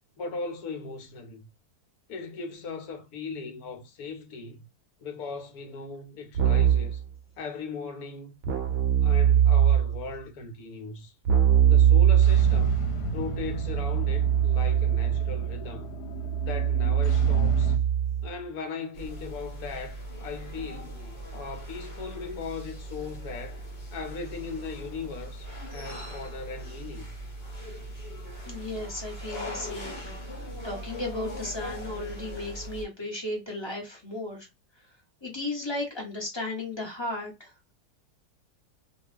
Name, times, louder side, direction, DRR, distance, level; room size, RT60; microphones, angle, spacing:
voice 1, 0.2-1.5 2.1-4.7 5.0-7.0 7.4-8.4 9.0-11.1 11.7-12.8 13.1-15.9 16.4-17.8 18.2-21.0 21.3-23.6 23.9-25.5 25.7-27.1, left 4 dB, 70° left, 1.1 m, -38 dB
Keyboard (musical), 6.3-7.0 8.4-10.0 11.2-18.3, right 9 dB, 65° right, 0.7 m, -22 dB
sound 1, 12.2-17.8, left 1 dB, 90° left, 1.2 m, -36 dB
sound 2, 18.9-32.9, equal, 45° left, 1.2 m, -40 dB
voice 2, 28.4-34.5 35.2-37.5, left 2 dB, 25° left, 0.7 m, -35 dB
2.7 x 2.4 x 3.2 m
omnidirectional pair, 1.7 m